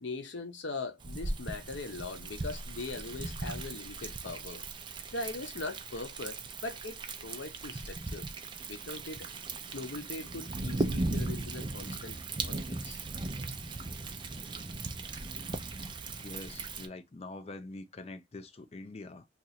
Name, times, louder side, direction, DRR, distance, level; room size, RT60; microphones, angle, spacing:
voice 1, 0.0-4.6 5.1-8.3 8.7-9.3 9.7-12.2 12.5-13.0, left 3 dB, 80° left, 0.8 m, -41 dB
Thunder, 1.0-16.9, right 2 dB, 25° right, 0.4 m, -38 dB
voice 2, 16.1-19.3, left 2 dB, 35° left, 0.4 m, -45 dB
2.9 x 2.4 x 4.0 m
head